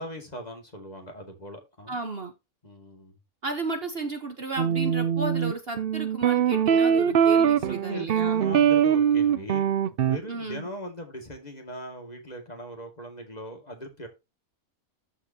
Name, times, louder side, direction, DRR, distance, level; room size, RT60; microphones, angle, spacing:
voice 1, 0.0-2.0 2.6-3.2 7.6-9.7 10.0-14.1, equal, 30° left, 2.2 m, -40 dB
voice 2, 1.9-2.3 3.4-8.4 10.3-10.7, right 3 dB, 45° right, 1.2 m, -33 dB
sound 1, 4.6-10.2, right 8 dB, 65° right, 0.5 m, -22 dB
13.5 x 4.9 x 2.8 m
omnidirectional pair, 1.6 m